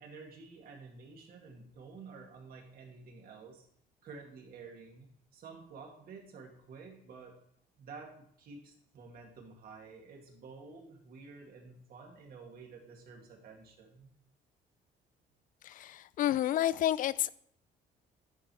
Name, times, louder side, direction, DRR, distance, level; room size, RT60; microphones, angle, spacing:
voice 1, 0.0-3.7 4.0-5.1 5.3-7.4 7.8-14.1, right 4 dB, 60° right, 2.3 m, -51 dB
voice 2, 15.6-17.3, left 12 dB, 55° left, 0.4 m, -30 dB
10.5 x 5.3 x 4.6 m
cardioid pair, 110°, 17 cm